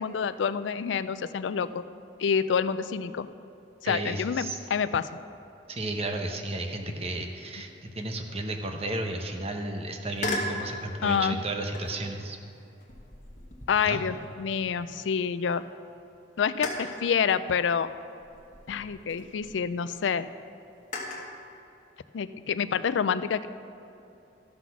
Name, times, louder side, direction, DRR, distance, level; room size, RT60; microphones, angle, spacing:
voice 1, 0.0-1.8 2.2-3.3 3.8-5.1 11.0-11.4 13.7-15.6 16.4-17.9 18.7-20.3 22.1-23.5, left 6 dB, 90° left, 14 dB, 0.4 m, -27 dB
voice 2, 3.9-4.6 5.7-12.4 13.8-14.0, right 2 dB, 35° right, 4 dB, 0.9 m, -33 dB
sound 1, 10.2-10.6 11.7-12.1 12.8-15.1 15.5-15.6 16.6-17.1 18.2-19.6 20.9-21.3, left 1 dB, 40° left, 1.3 m, -37 dB
13.5 x 6.0 x 6.1 m, 2.8 s
head